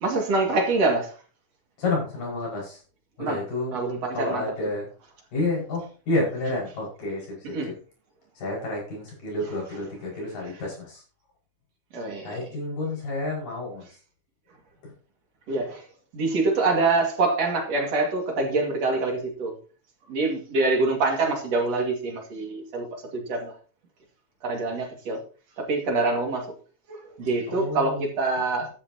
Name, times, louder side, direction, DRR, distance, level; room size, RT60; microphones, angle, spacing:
voice 1, 0.0-1.1 3.2-3.4 3.7-4.4 7.5-7.7 11.9-12.3 15.5-15.9 16.1-19.5 20.1-23.5 24.4-25.2 25.6-26.5 26.9-28.7, right 3 dB, 55° right, 3.2 m, -25 dB
voice 2, 1.8-2.8 3.2-3.8 4.1-4.9 5.3-7.7 8.4-11.0 12.2-13.9 14.8-14.9 27.5-28.1, left 2 dB, 85° left, 7.5 m, -30 dB
13.5 x 10.0 x 2.9 m
omnidirectional pair, 3.8 m